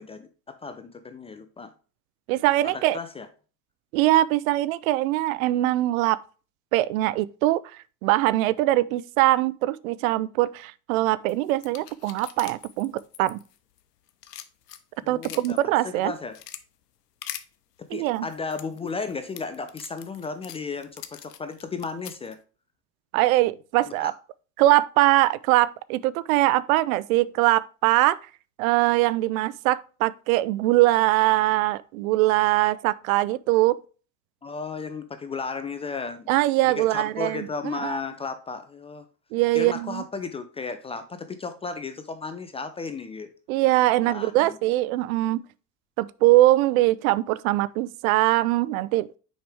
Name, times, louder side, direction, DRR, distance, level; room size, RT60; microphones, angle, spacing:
voice 1, 0.0-1.7 2.6-3.3 15.0-16.4 17.9-22.4 24.0-24.1 34.4-36.3 36.6-39.1 39.5-43.3 44.0-44.6, left 4 dB, 15° left, 0.3 m, -34 dB
voice 2, 2.3-3.0 3.9-6.2 6.7-7.6 8.0-12.9 13.2-13.4 15.1-16.1 17.9-18.2 23.1-24.1 24.6-28.2 28.6-33.8 36.3-38.0 39.3-40.0 43.5-45.4 46.0-49.1, right 16 dB, 60° right, 0.5 m, -22 dB
sound 1, 11.3-13.8 14.1-15.6 16.0-16.6 17.2-17.4 18.1-22.3, left 11 dB, 85° left, 0.8 m, -42 dB
6.3 x 4.9 x 3.3 m
hypercardioid pair, 90°, 47 cm